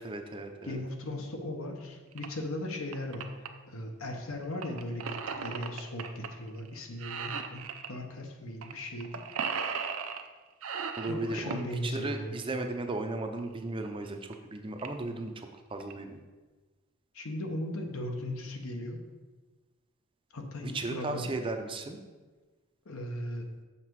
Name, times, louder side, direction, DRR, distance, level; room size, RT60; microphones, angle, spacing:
voice 1, 0.0-0.8 11.0-16.2 20.6-22.0, right 2 dB, 25° right, 5 dB, 0.5 m, -36 dB
voice 2, 0.6-9.2 11.1-12.4 17.1-19.0 20.3-21.3 22.8-23.4, left 1 dB, 75° left, 3 dB, 1.0 m, -38 dB
sound 1, 2.1-2.3 2.7-3.5 4.6-6.3 6.6-6.7 7.0-7.9 8.6-8.7 9.0-10.3 10.6-11.7 13.4-13.5 14.1-14.2 14.3-14.4 14.8-15.1 15.6-15.9, right 6 dB, 75° right, 0.6 m, -36 dB
6.5 x 5.8 x 4.6 m, 1.3 s
head